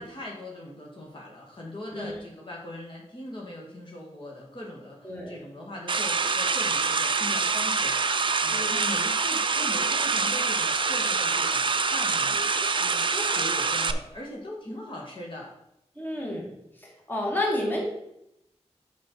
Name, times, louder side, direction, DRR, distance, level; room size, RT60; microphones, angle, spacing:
voice 1, 0.0-15.5, left 1 dB, 45° left, -3 dB, 1.7 m, -40 dB
sound 1, 5.9-13.9, right 4 dB, 45° right, 0.4 m, -25 dB
voice 2, 16.0-16.5 16.8-17.9, left 1 dB, 15° left, -1 dB, 1.8 m, -30 dB
6.4 x 5.5 x 4.4 m, 0.81 s
wide cardioid pair, 90°, 11 cm